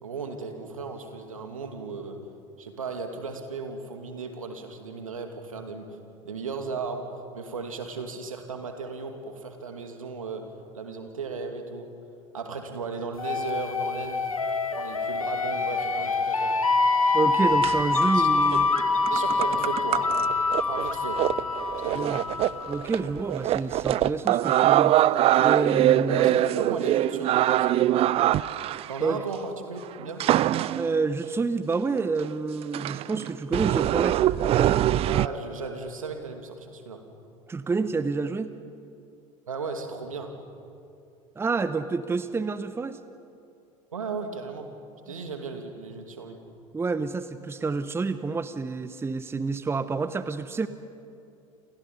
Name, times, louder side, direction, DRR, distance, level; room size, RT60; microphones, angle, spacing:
voice 1, 0.0-2.2 2.6-6.0 6.2-7.1 7.3-10.5 10.7-11.9 12.3-14.3 14.7-16.6 18.0-18.6 19.1-20.2 20.7-21.2 21.8-22.2 25.9-27.8 28.9-30.2 35.1-37.0 39.5-40.3 43.9-44.7 45.1-46.4, right 4 dB, 75° right, 5 dB, 2.6 m, -36 dB
sound 1, 13.2-22.9, left 3 dB, 85° left, 1.2 m, -25 dB
voice 2, 17.1-18.7 21.9-22.2 22.7-25.0 25.4-26.4 29.0-29.2 30.7-34.9 37.5-38.5 41.4-43.0 46.7-50.7, right 4 dB, 15° right, 13 dB, 0.9 m, -28 dB
sound 2, 17.6-18.0 18.6-18.8 19.1-29.2 30.2-31.0 31.7-31.8 32.2-32.3 32.7-35.3, right 13 dB, 35° right, 0.5 m, -23 dB
29.5 x 27.0 x 5.4 m, 2.5 s
figure-of-eight pair, 75°, 18 cm